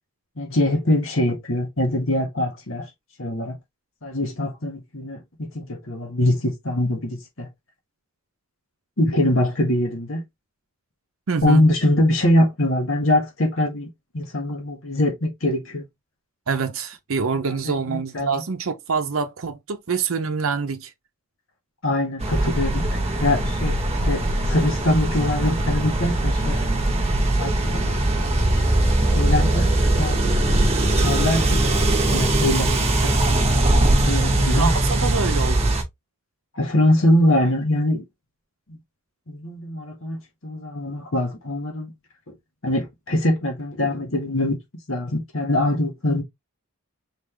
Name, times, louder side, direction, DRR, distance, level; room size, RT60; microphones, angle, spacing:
voice 1, 0.4-2.9 3.2-3.6 4.0-7.5 9.0-10.2 11.4-15.8 17.6-18.4 21.8-23.8 24.0-26.6 27.4-28.3 29.1-29.7 30.0-33.1 34.0-34.7 36.5-38.0 39.3-41.9 42.6-44.6 44.9-46.2, left 1 dB, 70° left, 1.6 m, -23 dB
voice 2, 11.3-11.6 16.5-20.9 33.0-33.2 34.6-35.7, right 5 dB, 75° right, 0.6 m, -26 dB
sound 1, 22.2-35.8, right 1 dB, 30° right, 1.1 m, -20 dB
3.9 x 3.8 x 3.3 m
head